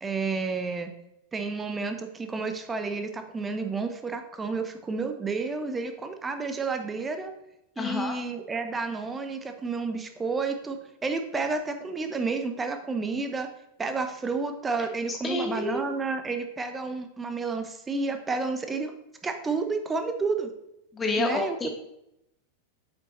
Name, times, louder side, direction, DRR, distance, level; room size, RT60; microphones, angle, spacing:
voice 1, 0.0-0.9 1.3-7.3 7.8-13.5 13.8-18.9 19.2-20.5 21.2-21.6, right 4 dB, 15° right, 7 dB, 0.8 m, -30 dB
voice 2, 7.8-8.2 15.1-15.9 20.9-21.7, left 3 dB, 15° left, 3 dB, 1.4 m, -29 dB
8.0 x 5.6 x 3.1 m, 0.83 s
figure-of-eight pair, 90°, 0 cm